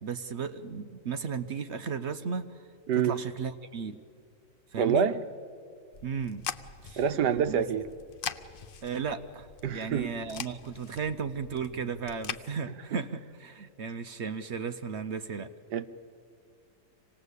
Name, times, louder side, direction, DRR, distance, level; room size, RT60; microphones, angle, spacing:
voice 1, 0.0-2.5 3.0-4.0 4.7-5.1 6.0-6.5 6.8-7.0 7.5-7.6 8.8-15.5, right 6 dB, 55° right, 9 dB, 0.8 m, -35 dB
voice 2, 2.9-3.2 4.8-5.2 7.0-7.9 9.6-10.1 15.7-15.9, right 7 dB, 75° right, 11 dB, 1.4 m, -26 dB
sound 1, 5.9-12.4, left 7 dB, 75° left, 0.5 m, -42 dB
26.0 x 19.0 x 8.2 m, 2.4 s
omnidirectional pair, 1.8 m